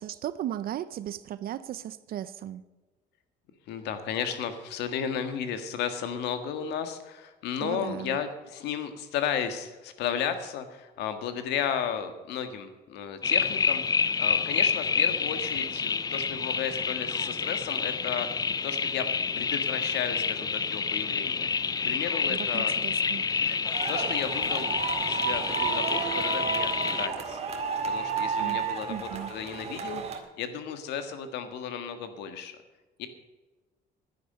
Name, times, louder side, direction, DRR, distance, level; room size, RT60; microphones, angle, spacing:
voice 1, 0.0-2.6 7.6-8.1 22.3-23.2 28.4-28.6 28.9-29.3, right 11 dB, 60° right, 15 dB, 0.6 m, -36 dB
voice 2, 3.7-18.3 18.6-19.1 19.4-22.7 23.4-27.4 27.9-30.0 30.4-32.6 33.0-33.1, left 8 dB, 85° left, 9 dB, 1.7 m, -34 dB
sound 1, 13.2-27.1, left 5 dB, 20° left, 0.4 m, -28 dB
sound 2, 23.7-30.2, right 6 dB, 40° right, 2.0 m, -32 dB
11.5 x 10.5 x 6.6 m, 1.2 s
cardioid pair, 110°, 17 cm